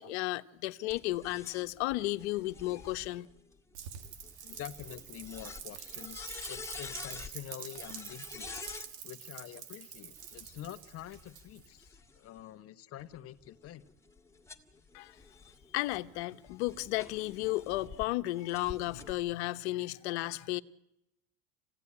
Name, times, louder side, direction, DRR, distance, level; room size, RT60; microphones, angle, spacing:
voice 1, 0.0-3.3 14.9-15.2 15.7-20.6, left 18 dB, 85° left, 1.1 m, -34 dB
sound 1, 0.9-8.9 10.0-12.4 13.0-18.1 18.5-19.1, left 4 dB, 10° left, 2.1 m, -48 dB
Rain, 3.7-11.8, right 9 dB, 85° right, 3.1 m, -47 dB
voice 2, 4.4-8.8 9.0-13.8, left 12 dB, 45° left, 1.3 m, -47 dB
28.0 x 17.0 x 9.9 m
supercardioid pair, 115°, 33 cm